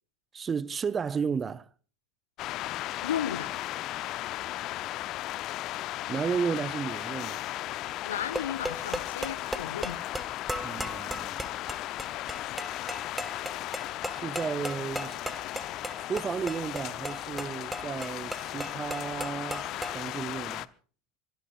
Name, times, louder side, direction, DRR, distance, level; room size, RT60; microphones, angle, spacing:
voice 1, 0.3-1.7 6.1-7.5 10.6-11.5 14.1-15.2 16.0-20.7, right 6 dB, 25° right, 0.7 m, -33 dB
sound 1, 2.4-20.7, left 15 dB, 45° left, 0.7 m, -36 dB
voice 2, 3.0-3.5 8.0-10.0, left 9 dB, 70° left, 1.1 m, -34 dB
sound 2, 8.1-20.0, right 1 dB, 5° right, 1.6 m, -38 dB
24.0 x 23.0 x 2.5 m
figure-of-eight pair, 75°, 0 cm